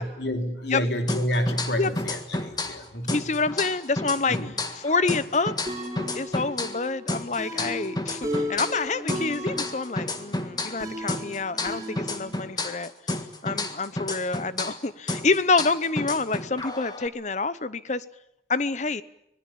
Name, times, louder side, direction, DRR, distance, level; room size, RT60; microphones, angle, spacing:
voice 1, 0.0-3.2 4.3-4.5 7.6-7.7 10.5-10.6, equal, 75° left, 5 dB, 3.0 m, -29 dB
sound 1, 1.1-2.8 3.1-6.8 7.1-10.8 11.1-14.8 15.1-17.1, left 2 dB, 25° left, 1.6 m, -31 dB
voice 2, 3.1-4.4 4.7-5.5 6.1-12.9 13.4-18.0 18.5-19.0, left 3 dB, 40° left, 16 dB, 0.8 m, -27 dB
sound 2, 5.7-12.5, equal, 20° right, 4.3 m, -35 dB
25.5 x 19.5 x 8.6 m, 0.81 s
head